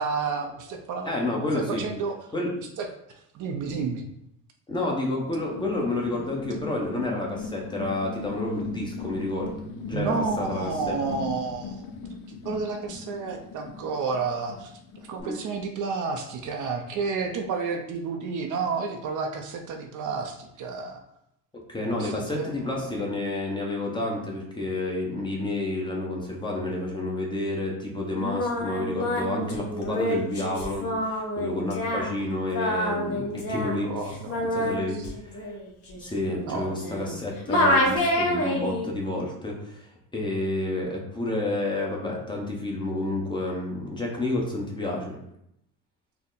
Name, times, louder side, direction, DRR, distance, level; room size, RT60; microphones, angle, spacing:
voice 1, 0.0-2.2 2.6-4.1 9.9-11.9 12.3-21.0 21.9-23.0 33.8-34.4 34.9-35.1 36.3-36.7, right 4 dB, 55° right, 4 dB, 0.6 m, -31 dB
voice 2, 1.1-1.9 2.3-2.5 4.7-11.0 15.2-15.4 21.7-33.9 34.5-35.5 35.9-45.2, left 2 dB, 10° left, -2 dB, 0.8 m, -30 dB
sound 1, 5.2-15.2, left 4 dB, 65° left, 0.6 m, -39 dB
Singing, 28.1-37.2 37.5-38.9, left 1 dB, 40° left, 1.1 m, -27 dB
4.2 x 2.1 x 3.8 m, 0.76 s
cardioid pair, 110°, 38 cm